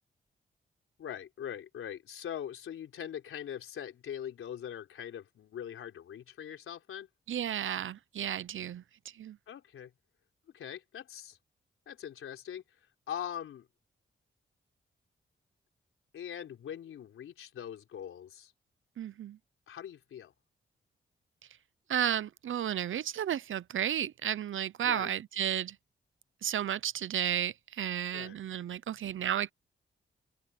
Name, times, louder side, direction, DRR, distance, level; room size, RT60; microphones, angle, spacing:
voice 1, 1.0-7.1 9.5-9.9 10.5-11.4 11.9-13.7 16.1-18.5 19.7-20.3 24.8-25.1 28.1-28.4, left 9 dB, 90° left, 4.0 m, -42 dB
voice 2, 7.3-9.4 19.0-19.4 21.9-25.8 26.4-29.5, right 10 dB, 75° right, 0.7 m, -33 dB
open air
cardioid pair, 55°, 21 cm